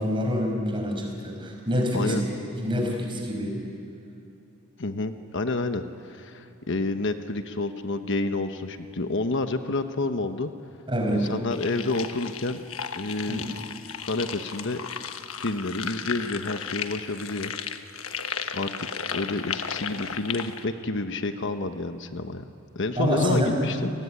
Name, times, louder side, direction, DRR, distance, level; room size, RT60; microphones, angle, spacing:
voice 1, 0.0-3.6 10.9-11.3 13.3-13.7 23.0-23.7, equal, 25° right, 1 dB, 5.6 m, -27 dB
voice 2, 4.8-10.5 11.1-12.6 12.9-13.5 14.0-14.8 15.4-17.5 18.5-22.5 22.7-23.9, left 2 dB, 65° left, 8 dB, 1.1 m, -29 dB
sound 1, 11.5-20.6, left 7 dB, 90° left, 1.3 m, -35 dB
29.5 x 19.5 x 9.9 m, 2.6 s
head